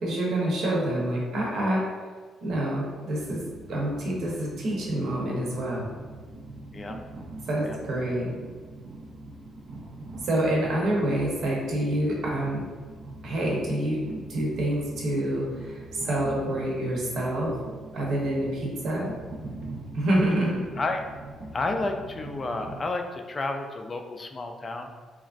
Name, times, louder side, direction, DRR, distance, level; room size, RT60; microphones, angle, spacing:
voice 1, 0.0-1.8 2.4-3.4 3.7-5.9 7.5-8.3 10.2-12.6 13.2-17.5 17.9-19.1 19.9-20.6, right 1 dB, 70° right, -3 dB, 0.8 m, -27 dB
Train, 3.1-22.9, right 2 dB, 55° right, 0.4 m, -42 dB
voice 2, 21.5-24.9, left 3 dB, 35° left, 4 dB, 0.3 m, -31 dB
3.1 x 2.4 x 2.4 m, 1.5 s
cardioid pair, 90°, 0 cm